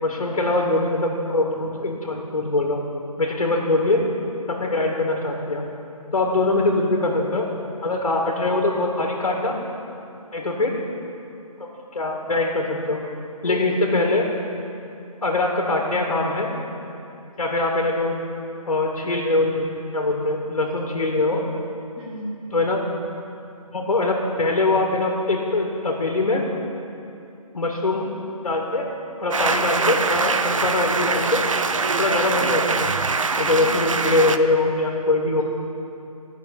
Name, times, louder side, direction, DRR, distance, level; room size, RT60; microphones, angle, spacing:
voice 1, 0.0-2.8 3.2-4.0 4.5-5.7 6.1-7.5 7.8-9.6 10.3-10.7 11.7-13.0 13.4-14.2 15.2-16.5 17.4-18.2 18.7-21.4 22.5-22.8 23.7-26.4 27.5-28.1 28.4-28.8 29.2-31.4 32.0-33.0 33.4-35.4, left 2 dB, 60° left, 0 dB, 2.2 m, -22 dB
voice 2, 6.5-6.8 13.4-14.3 22.0-22.4 33.5-33.8, equal, 5° right, -10 dB, 1.7 m, -33 dB
sound 1, 29.3-34.4, right 4 dB, 60° right, 0.6 m, -23 dB
14.0 x 6.6 x 8.4 m, 2.6 s
figure-of-eight pair, 160°, 19 cm